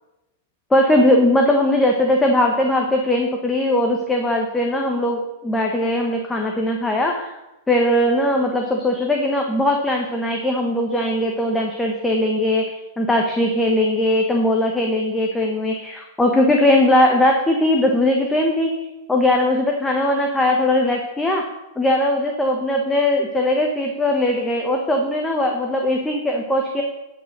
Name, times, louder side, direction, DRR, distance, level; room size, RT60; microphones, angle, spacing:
voice 1, 0.7-7.4 7.7-18.8 19.1-21.4 21.8-26.8, left 1 dB, 10° left, 1 dB, 1.2 m, -19 dB
11.5 x 5.3 x 6.8 m, 0.99 s
hypercardioid pair, 120°, 0 cm